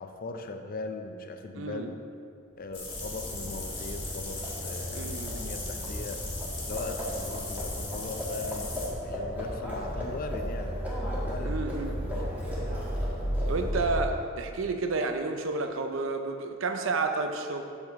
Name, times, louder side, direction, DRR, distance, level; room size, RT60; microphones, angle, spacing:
voice 1, 0.0-1.9 2.5-5.1 5.3-6.3 6.6-8.7 9.0-10.8 11.2-11.7 12.0-12.2, left 3 dB, 45° left, 6 dB, 0.5 m, -39 dB
voice 2, 1.6-1.9 4.9-5.4 11.4-11.9 13.5-17.6, right 3 dB, 70° right, 6 dB, 0.6 m, -31 dB
Livestock farm animals working animals, 2.6-14.3, equal, 10° right, 1.5 m, -34 dB
sound 1, 2.7-8.9, left 3 dB, 30° left, 1.7 m, -39 dB
7.7 x 6.7 x 3.6 m, 2.3 s
head